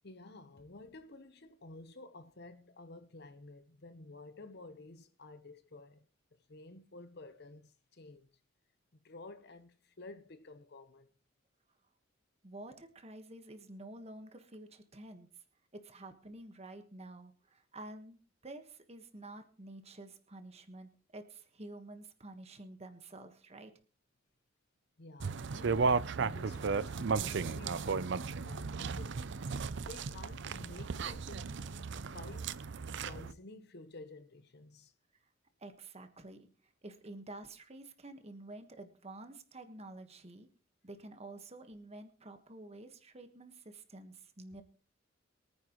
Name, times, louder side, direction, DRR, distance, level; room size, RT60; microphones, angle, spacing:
voice 1, 0.0-6.1 6.5-8.3 8.9-11.1 25.0-25.9 26.2-29.3 29.8-31.5 32.1-32.5 33.0-34.9, left 2 dB, 60° left, 1.0 m, -52 dB
voice 2, 12.4-15.3 15.7-18.2 18.4-23.7 35.6-40.5 40.8-44.6, right 2 dB, 35° right, 1.4 m, -50 dB
sound 1, 25.2-33.3, right 4 dB, 65° right, 0.5 m, -35 dB
23.0 x 9.6 x 3.1 m
head